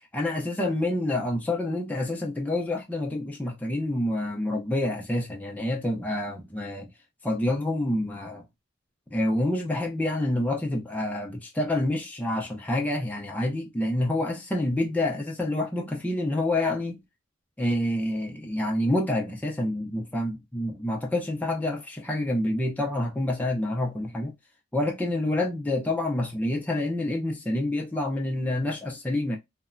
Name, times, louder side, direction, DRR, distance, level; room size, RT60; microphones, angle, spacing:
voice 1, 0.1-6.9 7.2-8.4 9.1-17.0 17.6-24.3 24.7-29.4, left 1 dB, 5° left, 0.4 m, -27 dB
2.8 x 2.1 x 2.4 m
head